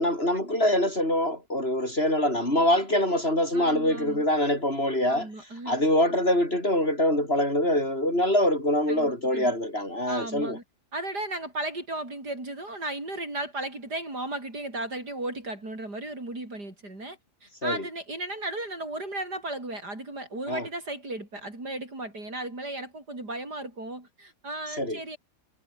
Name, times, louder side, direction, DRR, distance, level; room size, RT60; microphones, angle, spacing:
voice 1, 0.0-5.3 5.7-10.6 17.6-17.8 20.5-20.7 24.8-25.0, left 1 dB, 30° left, 8.1 m, -24 dB
voice 2, 3.5-4.2 5.1-5.9 8.9-9.5 10.1-10.6 10.9-25.2, right 2 dB, 55° right, 7.9 m, -35 dB
omnidirectional pair, 2.1 m